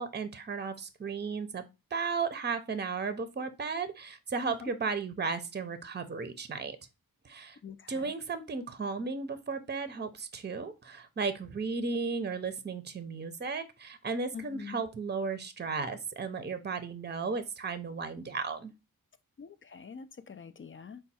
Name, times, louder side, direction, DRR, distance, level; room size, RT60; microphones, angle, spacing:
voice 1, 0.0-1.6 1.9-6.8 7.2-7.6 7.9-18.7, right 4 dB, 30° right, 0.6 m, -35 dB
voice 2, 7.6-8.1 14.3-14.8 19.4-21.0, left 6 dB, 35° left, 0.4 m, -45 dB
4.4 x 2.3 x 4.1 m
cardioid pair, 55°, 36 cm